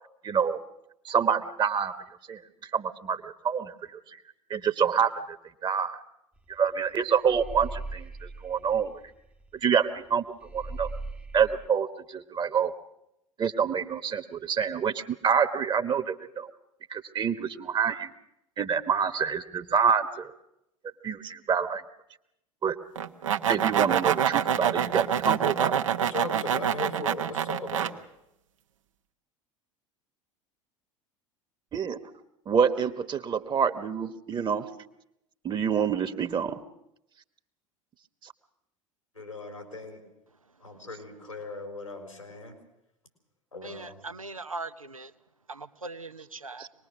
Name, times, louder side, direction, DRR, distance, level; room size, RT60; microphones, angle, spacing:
voice 1, 0.2-0.6 1.0-1.9 2.3-4.2 4.5-5.4 5.6-6.0 6.5-8.9 9.6-10.2 10.5-10.9 11.3-12.7 13.4-16.5 16.9-18.1 18.6-20.3 21.0-21.8 22.6-22.8 23.5-25.8 31.7-32.0 32.5-34.7 35.4-36.6 38.2-38.3, right 7 dB, 25° right, 10 dB, 1.3 m, -27 dB
sound 1, 6.4-6.6 6.8-9.7 10.0-10.1 10.4-11.7, right 2 dB, 10° right, 0.9 m, -39 dB
sound 2, 23.0-27.9, right 9 dB, 70° right, 1.1 m, -26 dB
voice 2, 26.0-28.0 39.1-40.0 40.6-42.5 43.5-44.0, left 3 dB, 90° left, 3 dB, 4.4 m, -38 dB
voice 3, 43.6-45.1 45.5-46.7, right 3 dB, 85° right, 12 dB, 0.8 m, -40 dB
25.0 x 20.0 x 6.3 m, 0.85 s
figure-of-eight pair, 75°, 17 cm